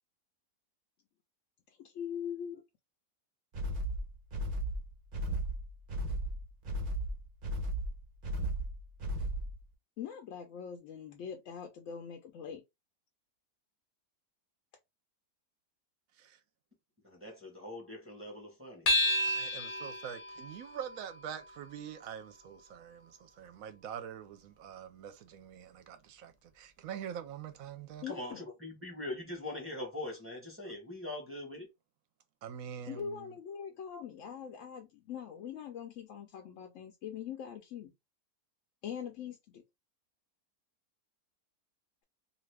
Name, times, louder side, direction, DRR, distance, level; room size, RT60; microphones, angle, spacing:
voice 1, 1.8-2.6 10.0-12.6 28.0-28.4 32.9-37.9 38.8-39.6, left 8 dB, 65° left, 0.8 m, -42 dB
sound 1, 3.5-9.6, right 1 dB, 45° right, 0.7 m, -35 dB
voice 2, 17.0-18.9 28.1-31.7, left 1 dB, 10° right, 0.7 m, -42 dB
sound 2, 18.9-23.6, left 1 dB, 40° left, 0.5 m, -34 dB
voice 3, 19.2-28.0 32.4-33.3, right 8 dB, 70° right, 0.9 m, -45 dB
2.6 x 2.5 x 3.2 m
omnidirectional pair, 1.6 m